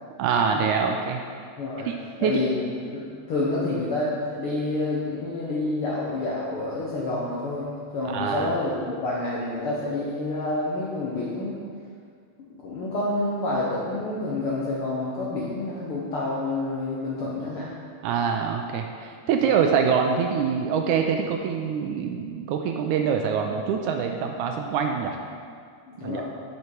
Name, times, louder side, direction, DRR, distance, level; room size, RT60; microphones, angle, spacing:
voice 1, 0.2-1.2 1.9-2.0 2.2-2.4 8.1-8.5 18.0-25.2 26.0-26.2, right 6 dB, 80° right, 3 dB, 1.8 m, -25 dB
voice 2, 1.6-1.9 2.2-11.6 12.6-17.7 19.4-19.5 25.9-26.2, left 2 dB, 65° left, -6 dB, 1.4 m, -28 dB
9.4 x 6.9 x 4.5 m, 2.1 s
omnidirectional pair, 3.8 m